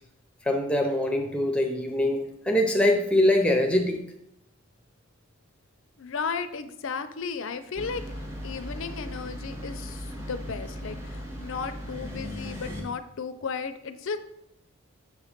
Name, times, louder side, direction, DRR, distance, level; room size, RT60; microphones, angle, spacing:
voice 1, 0.4-4.0, left 1 dB, 5° left, 3 dB, 0.6 m, -23 dB
voice 2, 6.0-8.0 8.4-14.2, left 5 dB, 60° left, 11 dB, 0.4 m, -34 dB
sound 1, 7.8-12.8, equal, 10° right, 1.0 m, -37 dB
7.0 x 3.1 x 4.9 m, 0.79 s
head